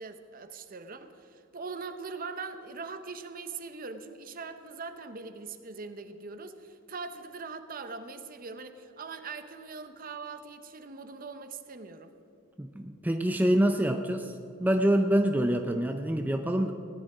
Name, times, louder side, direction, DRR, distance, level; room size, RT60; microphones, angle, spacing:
voice 1, 0.0-12.1, right 4 dB, 40° right, 9 dB, 0.8 m, -41 dB
voice 2, 12.6-14.3 14.6-16.7, right 1 dB, 10° right, 5 dB, 0.5 m, -26 dB
17.0 x 10.0 x 4.9 m, 2.8 s
head